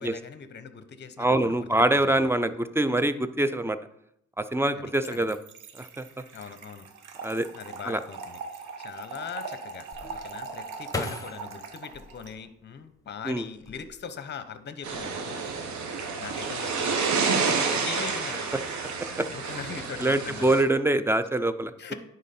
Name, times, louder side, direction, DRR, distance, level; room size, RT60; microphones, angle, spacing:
voice 1, 0.0-2.3 4.7-5.3 6.3-6.9 7.6-15.4 16.2-18.7 19.3-20.7 21.8-21.9, left 6 dB, 35° left, 12 dB, 0.8 m, -41 dB
voice 2, 1.2-3.8 4.4-5.4 5.8-6.0 7.2-7.5 7.8-8.0 13.2-13.4 19.2-19.3 20.0-21.7, right 1 dB, 10° right, 12 dB, 0.5 m, -24 dB
Trickle dribble / Fill (with liquid), 4.9-12.3, right 4 dB, 85° right, 1.1 m, -41 dB
sound 1, 9.9-13.0 13.5-14.3 14.6-15.1, left 2 dB, 10° left, 1.2 m, -38 dB
sound 2, 14.8-20.6, right 5 dB, 70° right, 1.4 m, -29 dB
10.0 x 4.1 x 4.3 m, 0.76 s
cardioid pair, 90°, 30 cm